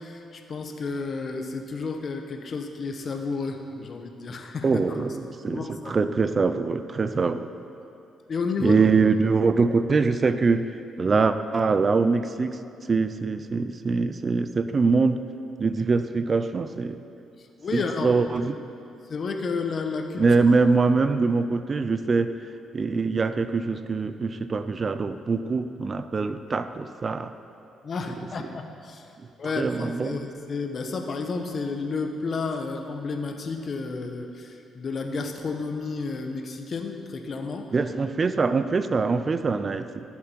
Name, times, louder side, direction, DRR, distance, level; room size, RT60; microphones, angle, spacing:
voice 1, 0.0-5.0 5.5-6.0 8.3-8.8 17.6-18.2 19.1-20.3 27.8-29.1 29.4-37.7, left 4 dB, 45° left, 5 dB, 1.0 m, -31 dB
voice 2, 4.6-7.5 8.6-10.7 11.0-12.6 12.9-15.2 15.6-17.0 17.7-18.6 20.2-22.3 22.7-27.3 29.6-30.2 37.7-40.0, right 4 dB, 35° right, 11 dB, 0.4 m, -23 dB
15.0 x 7.5 x 4.5 m, 2.6 s
cardioid pair, 90°, 0 cm